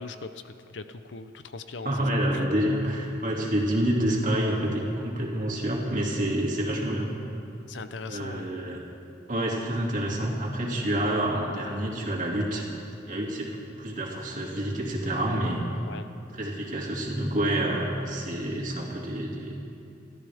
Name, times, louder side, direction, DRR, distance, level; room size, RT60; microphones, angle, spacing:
voice 1, 0.0-2.2 3.4-3.5 7.7-8.5 15.8-16.1, left 3 dB, 70° left, 10 dB, 0.7 m, -40 dB
voice 2, 1.8-7.1 8.1-8.8 9.3-12.6 13.1-15.6 16.4-19.6, right 1 dB, 45° right, -2 dB, 2.6 m, -28 dB
29.0 x 13.0 x 3.6 m, 2.7 s
head